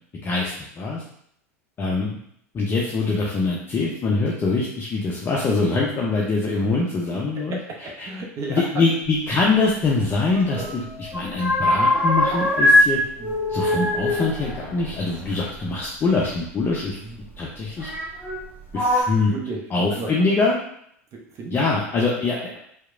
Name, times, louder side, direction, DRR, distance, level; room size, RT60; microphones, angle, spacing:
voice 1, 0.2-1.0 1.8-2.2 2.5-7.6 8.0-8.1 8.5-13.0 13.5-17.0 17.4-17.9 18.7-19.3 19.7-20.6 21.5-22.6, left 3 dB, 25° left, -3 dB, 0.4 m, -23 dB
voice 2, 7.5-8.7 13.2-13.3 17.0-17.2 19.3-19.6 19.9-20.1 21.1-21.6, right 3 dB, 35° right, -1 dB, 0.5 m, -33 dB
sound 1, 9.8-10.8 11.0-12.9 13.2-15.7 16.7-16.8 17.8-18.4 18.7-19.0, left 1 dB, 20° right, 1.0 m, -21 dB
2.8 x 2.0 x 2.4 m, 0.69 s
hypercardioid pair, 90°, 8 cm